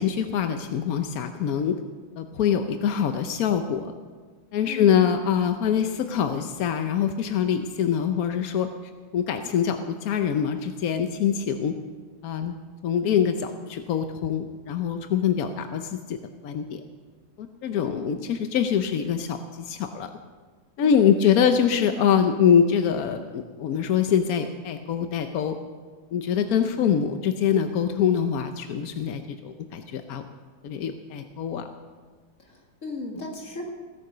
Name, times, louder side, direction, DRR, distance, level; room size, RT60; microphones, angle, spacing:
voice 1, 0.0-1.7 2.2-3.9 4.5-8.7 9.1-11.7 12.2-12.5 12.8-16.2 16.4-16.8 17.4-20.1 20.8-25.6 26.1-30.2 30.6-31.7, left 8 dB, 65° left, 7 dB, 0.9 m, -24 dB
voice 2, 4.7-5.1 17.8-18.1 20.8-21.1 32.4-33.7, left 2 dB, 40° left, 0 dB, 2.5 m, -36 dB
17.0 x 9.9 x 6.7 m, 1.4 s
omnidirectional pair, 2.2 m